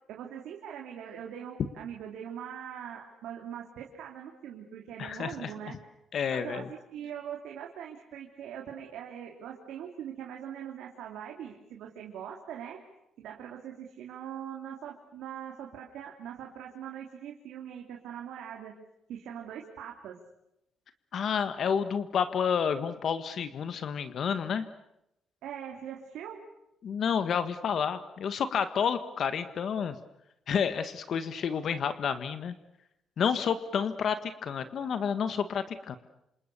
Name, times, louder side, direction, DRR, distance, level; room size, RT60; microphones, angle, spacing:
voice 1, 0.1-5.7 6.3-12.8 13.2-18.7 19.1-20.2 25.4-26.4, right 9 dB, 85° right, 0 dB, 3.2 m, -42 dB
voice 2, 5.0-5.5 6.1-6.7 21.1-24.7 26.8-30.0 30.5-32.5 33.2-36.0, left 7 dB, 60° left, 11 dB, 1.6 m, -30 dB
27.5 x 27.0 x 7.0 m, 0.83 s
cardioid pair, 90°, 0 cm